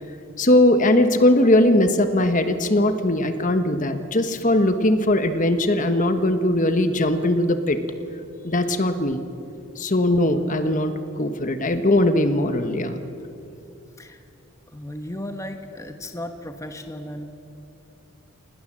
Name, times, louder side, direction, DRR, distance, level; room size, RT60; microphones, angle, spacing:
voice 1, 0.4-7.8 8.4-9.2 9.8-13.0, left 1 dB, 35° left, 9 dB, 1.2 m, -20 dB
voice 2, 14.7-17.3, left 1 dB, 15° left, 6 dB, 1.1 m, -35 dB
28.5 x 20.0 x 7.5 m, 2.7 s
head